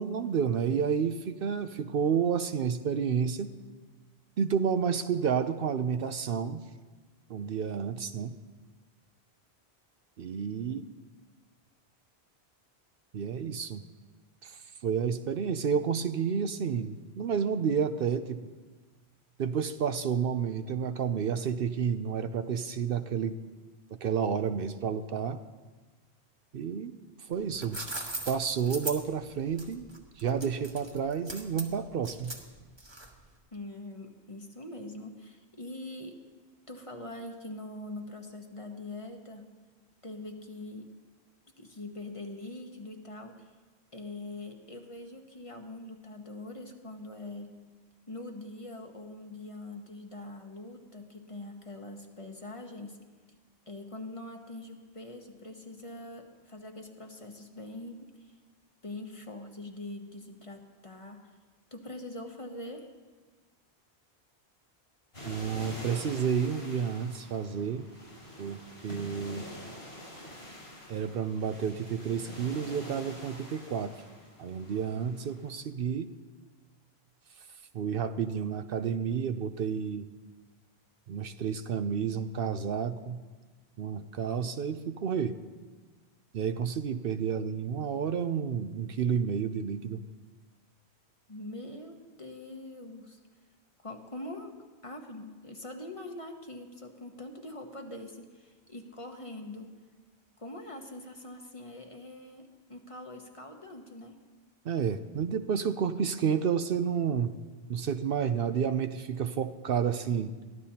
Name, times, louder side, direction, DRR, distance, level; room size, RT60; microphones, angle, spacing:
voice 1, 0.0-3.5 4.4-6.6 7.3-8.4 10.2-10.8 13.1-13.8 14.4-18.5 19.4-23.4 23.9-25.4 26.5-27.8 28.2-29.8 30.2-32.4 65.2-67.9 68.4-69.5 70.9-73.9 74.4-76.1 77.7-80.1 81.1-83.2 83.8-85.4 86.3-90.0 104.6-107.4 107.7-110.3, right 7 dB, 65° right, 10 dB, 0.8 m, -30 dB
sound 1, 27.3-33.3, right 2 dB, 25° right, 1.4 m, -40 dB
voice 2, 33.5-36.2 36.7-39.5 40.0-40.9 41.6-43.5 43.9-47.6 48.1-53.0 53.7-58.3 58.8-61.3 61.7-62.9 91.3-93.2 93.8-94.6 94.8-99.7 100.4-104.2, left 2 dB, 30° left, 3 dB, 1.2 m, -43 dB
sound 2, 65.1-75.5, left 1 dB, 75° left, 6.2 m, -46 dB
22.5 x 15.0 x 2.9 m, 1.3 s
omnidirectional pair, 1.1 m